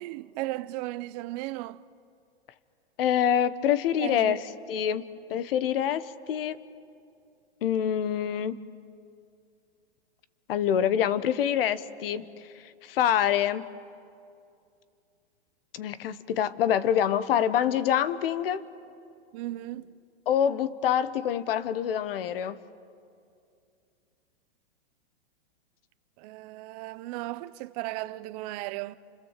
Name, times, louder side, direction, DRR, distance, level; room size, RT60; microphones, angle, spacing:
voice 1, 0.0-1.8 4.0-4.4 19.3-19.9 26.2-29.0, right 18 dB, 40° right, 0.8 m, -36 dB
voice 2, 3.0-4.4 4.7-6.6 7.6-8.6 10.5-12.3 12.6-13.7 15.7-18.6 20.3-22.6, left 9 dB, 60° left, 1.3 m, -26 dB
30.0 x 26.0 x 7.5 m
hypercardioid pair, 140°, 32 cm